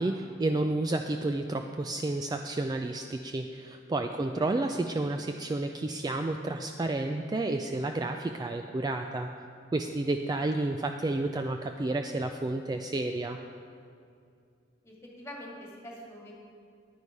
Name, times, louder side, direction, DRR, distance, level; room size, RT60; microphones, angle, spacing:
voice 1, 0.0-9.3 9.7-13.4, right 2 dB, 20° right, 5 dB, 0.3 m, -31 dB
voice 2, 4.3-4.6 10.0-10.1 14.8-16.3, equal, 15° left, -3 dB, 1.9 m, -45 dB
9.9 x 9.4 x 4.7 m, 2.4 s
head